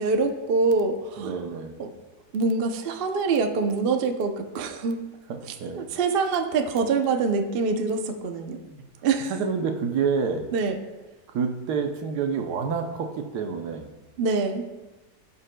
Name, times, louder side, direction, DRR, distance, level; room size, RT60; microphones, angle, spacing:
voice 1, 0.0-1.4 1.8-1.9 2.3-5.0 5.4-8.6 9.0-9.4 10.5-10.8 14.2-14.6, right 4 dB, 55° right, 4 dB, 0.6 m, -25 dB
voice 2, 1.2-1.7 5.3-5.9 8.7-8.8 9.3-10.4 11.3-13.9, right 5 dB, 75° right, 5 dB, 1.3 m, -28 dB
16.0 x 5.6 x 2.2 m, 1.1 s
omnidirectional pair, 1.8 m